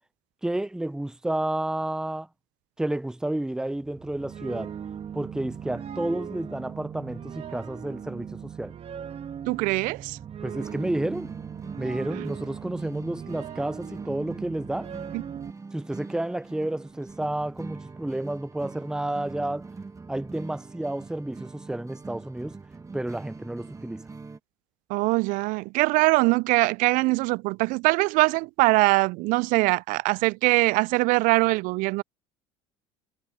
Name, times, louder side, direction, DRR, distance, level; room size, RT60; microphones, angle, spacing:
voice 1, 0.4-2.3 2.8-4.7 5.1-8.7 10.4-11.3 11.8-14.9 15.7-19.7 20.1-22.6 22.9-24.0, right 1 dB, 5° right, 0.8 m, -31 dB
sound 1, 3.7-15.5, right 8 dB, 40° right, 2.6 m, -39 dB
voice 2, 9.5-10.2 12.2-12.3 15.1-15.2 24.9-32.0, right 24 dB, 60° right, 0.4 m, -22 dB
sound 2, 10.5-24.4, right 4 dB, 20° right, 1.9 m, -43 dB
hypercardioid pair, 75°, 15 cm